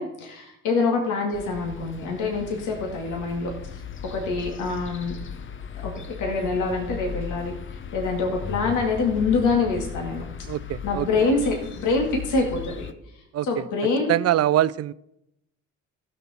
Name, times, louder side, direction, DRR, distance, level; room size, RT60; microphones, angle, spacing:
voice 1, 0.0-3.8 4.1-5.1 5.8-5.9 6.2-7.5 7.9-10.3 10.8-12.9 13.4-14.1, left 4 dB, 75° left, 1 dB, 2.3 m, -25 dB
sound 1, 1.3-12.9, left 7 dB, 40° left, 0.8 m, -37 dB
voice 2, 10.5-11.3 13.3-13.6 14.1-14.9, right 13 dB, 55° right, 19 dB, 0.5 m, -24 dB
15.0 x 6.8 x 4.3 m, 0.85 s
supercardioid pair, 70°, 31 cm